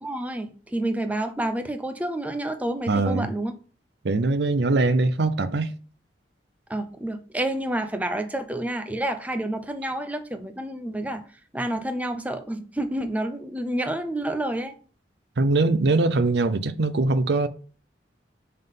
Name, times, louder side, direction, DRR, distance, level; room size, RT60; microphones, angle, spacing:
voice 1, 0.0-3.5 6.7-11.2 11.5-14.7, right 1 dB, 10° right, 0.6 m, -29 dB
voice 2, 2.9-3.3 4.0-5.7 15.4-17.5, right 3 dB, 65° right, 0.5 m, -22 dB
5.4 x 3.8 x 5.4 m
head